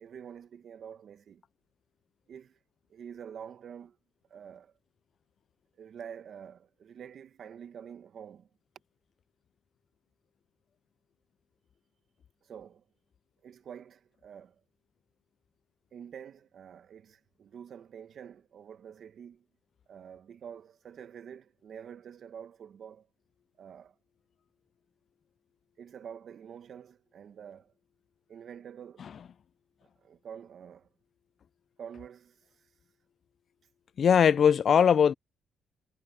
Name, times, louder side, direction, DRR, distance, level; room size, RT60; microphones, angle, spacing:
voice 1, 0.0-1.4 2.3-2.6 2.9-4.0 4.3-4.7 5.8-8.5 12.4-12.8 13.4-14.6 15.9-19.4 19.9-23.1 23.6-23.9 25.8-27.7 28.3-29.1 30.0-30.9 31.8-32.4, right 8 dB, 60° right, 1.3 m, -47 dB
voice 2, 34.0-35.1, left 7 dB, 55° left, 0.4 m, -21 dB
cardioid pair, 90°, 0 cm